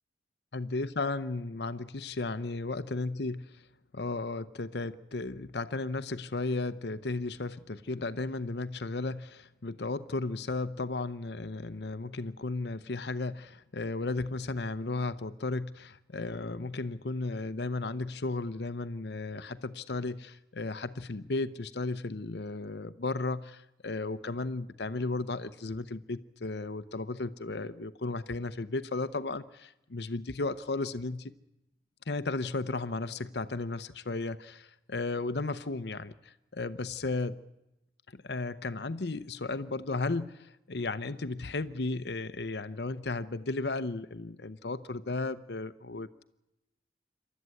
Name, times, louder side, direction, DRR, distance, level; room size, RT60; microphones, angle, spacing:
voice 1, 0.5-3.3 3.9-31.3 32.1-37.4 38.1-46.2, left 3 dB, 70° left, 13 dB, 0.8 m, -34 dB
27.5 x 12.5 x 9.6 m, 0.90 s
head